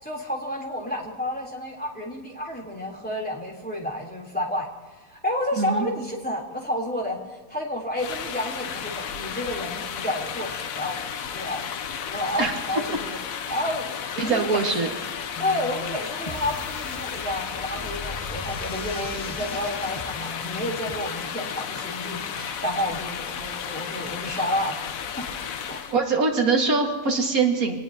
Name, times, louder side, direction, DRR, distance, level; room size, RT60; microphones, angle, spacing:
voice 1, 0.0-4.7 5.0-11.0 11.3-13.2 13.5-14.9 15.4-24.8 25.2-25.3 25.7-25.9, left 1 dB, 5° left, -2 dB, 3.4 m, -30 dB
sound 1, 8.0-26.0, left 7 dB, 75° left, 1.2 m, -33 dB
voice 2, 14.2-14.9 25.9-27.8, right 4 dB, 85° right, 2 dB, 2.4 m, -23 dB
sound 2, 15.3-21.0, left 2 dB, 25° left, 1.2 m, -39 dB
26.5 x 19.0 x 2.9 m, 1.4 s
omnidirectional pair, 1.5 m